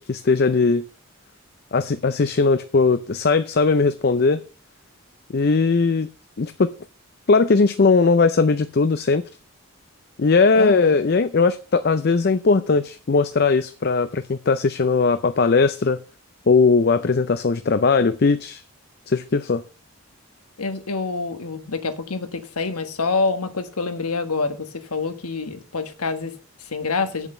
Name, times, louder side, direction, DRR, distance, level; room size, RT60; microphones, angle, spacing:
voice 1, 0.1-0.8 1.7-4.4 5.3-6.1 6.4-6.7 7.3-9.2 10.2-16.0 16.5-18.6 19.1-19.6, left 4 dB, 45° left, 0.5 m, -19 dB
voice 2, 10.5-11.0 20.6-27.3, left 4 dB, 90° left, 1.4 m, -26 dB
8.1 x 7.1 x 6.6 m
head